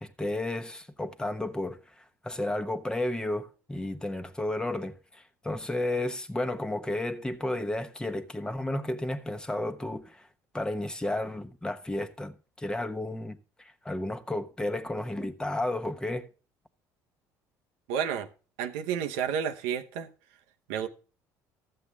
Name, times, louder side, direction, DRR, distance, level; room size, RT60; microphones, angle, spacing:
voice 1, 0.0-10.3 10.5-16.3, left 1 dB, 10° left, 1.0 m, -32 dB
voice 2, 17.9-18.3 18.6-20.1 20.7-20.9, right 8 dB, 90° right, 1.0 m, -30 dB
13.5 x 7.8 x 3.5 m
supercardioid pair, 95°, 7 cm